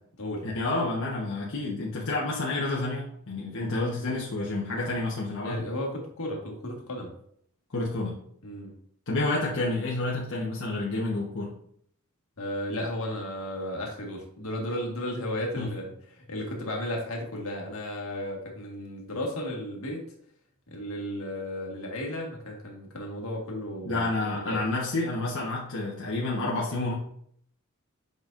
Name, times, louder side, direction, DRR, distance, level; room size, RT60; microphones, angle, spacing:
voice 1, 0.4-5.6 7.7-8.2 9.1-11.5 15.6-15.7 23.8-26.9, left 2 dB, 65° left, -5 dB, 1.2 m, -29 dB
voice 2, 5.4-7.1 8.4-8.7 12.4-20.1 20.7-24.6, left 1 dB, 80° left, 0 dB, 1.7 m, -34 dB
7.9 x 5.2 x 2.6 m, 0.65 s
head